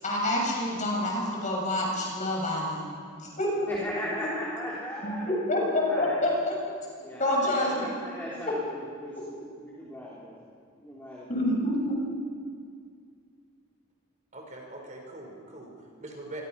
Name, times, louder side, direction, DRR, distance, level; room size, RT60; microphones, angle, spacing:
voice 1, 0.0-2.8 3.2-3.5 4.0-4.3 5.3-6.5 7.2-8.0 11.3-12.0, left 1 dB, 35° left, -2 dB, 7.2 m, -27 dB
voice 2, 3.7-5.4 5.9-6.2 7.0-10.4 10.8-11.4, equal, 10° left, -5 dB, 3.5 m, -38 dB
voice 3, 14.3-16.4, right 2 dB, 35° right, 1 dB, 4.8 m, -43 dB
26.5 x 23.0 x 5.9 m, 2.1 s
head